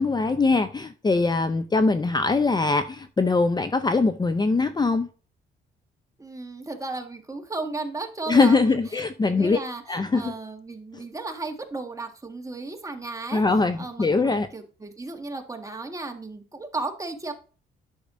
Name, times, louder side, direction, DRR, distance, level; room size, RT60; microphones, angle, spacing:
voice 1, 0.0-5.1 8.3-9.6 9.9-10.3 10.9-11.0 13.3-14.5, left 3 dB, 20° left, 0.6 m, -22 dB
voice 2, 6.2-13.4 13.7-17.3, right 3 dB, 15° right, 1.6 m, -35 dB
10.0 x 6.4 x 2.6 m
cardioid pair, 90°, 20 cm